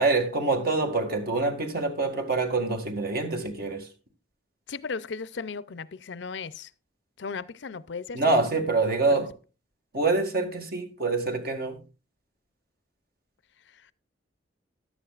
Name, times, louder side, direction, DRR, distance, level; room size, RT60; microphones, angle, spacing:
voice 1, 0.0-3.9 8.1-9.3 9.9-11.8, right 3 dB, 55° right, 2.0 m, -26 dB
voice 2, 4.7-6.7 7.2-8.5 13.7-13.9, left 5 dB, 70° left, 0.6 m, -36 dB
14.5 x 11.0 x 2.4 m
head